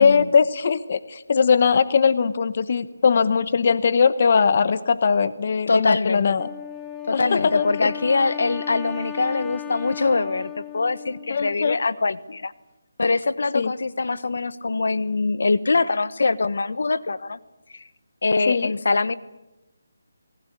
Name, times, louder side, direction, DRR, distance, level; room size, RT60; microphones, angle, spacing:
voice 1, 0.0-6.5 7.1-7.7 11.3-11.8 13.5-13.7 18.5-18.7, left 5 dB, 45° left, 14 dB, 0.9 m, -20 dB
voice 2, 5.7-6.4 7.1-12.5 13.0-17.4 17.7-17.9 18.2-19.2, left 3 dB, 70° left, 16 dB, 1.2 m, -23 dB
Wind instrument woodwind instrument, 6.4-11.8, left 11 dB, 15° left, 1.8 m, -36 dB
28.0 x 19.5 x 8.6 m, 0.99 s
hypercardioid pair, 165°, 0 cm